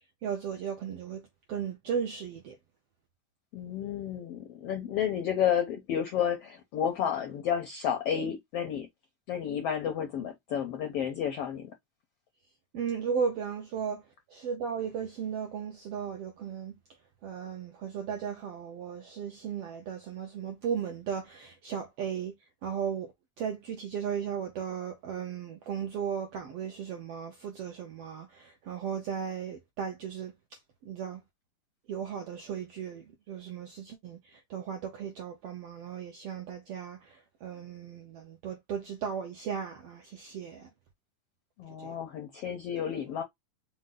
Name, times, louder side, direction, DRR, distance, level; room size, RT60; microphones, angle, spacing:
voice 1, 0.2-1.2 1.5-2.6 12.7-14.0 14.3-16.7 17.2-22.3 22.6-23.1 23.4-30.3 30.9-31.2 31.9-40.7 41.8-41.9, right 7 dB, 75° right, 1.4 m, -36 dB
voice 2, 3.5-8.9 9.3-11.7 41.6-43.2, left 9 dB, 80° left, 1.3 m, -31 dB
5.3 x 2.2 x 3.7 m
omnidirectional pair, 3.8 m